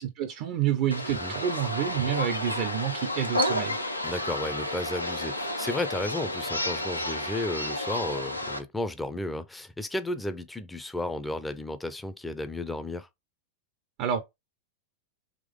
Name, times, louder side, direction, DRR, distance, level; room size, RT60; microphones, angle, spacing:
voice 1, 0.0-3.8 14.0-14.2, right 10 dB, 45° right, 0.5 m, -28 dB
sound 1, 0.9-8.6, left 1 dB, 85° left, 0.6 m, -31 dB
voice 2, 4.0-13.1, left 1 dB, 5° left, 0.5 m, -33 dB
3.7 x 2.9 x 3.5 m
figure-of-eight pair, 90°, 0 cm